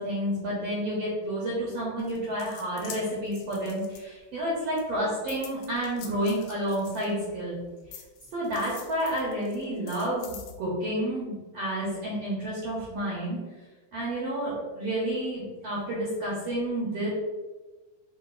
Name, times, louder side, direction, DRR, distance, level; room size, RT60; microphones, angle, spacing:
voice 1, 0.0-7.6 8.3-13.4 13.9-17.1, right 1 dB, 65° right, -6 dB, 1.6 m, -30 dB
sound 1, 2.0-4.4 4.8-7.4 7.9-10.5, left 8 dB, 85° left, 1.6 m, -46 dB
5.1 x 2.5 x 3.8 m, 1.3 s
omnidirectional pair, 3.9 m